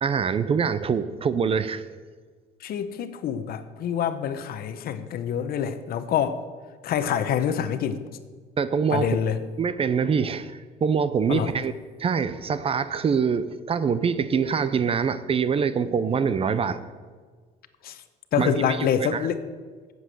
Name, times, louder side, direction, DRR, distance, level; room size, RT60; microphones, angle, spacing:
voice 1, 0.0-1.8 8.6-9.1 9.6-11.7 12.0-16.8 18.4-19.2, right 6 dB, 35° right, 14 dB, 0.6 m, -24 dB
voice 2, 2.6-6.4 6.8-8.0 8.9-9.4 11.3-11.5 17.8-18.0 18.3-19.4, left 8 dB, 60° left, 11 dB, 0.9 m, -26 dB
8.3 x 7.9 x 7.7 m, 1.5 s
cardioid pair, 110°, 17 cm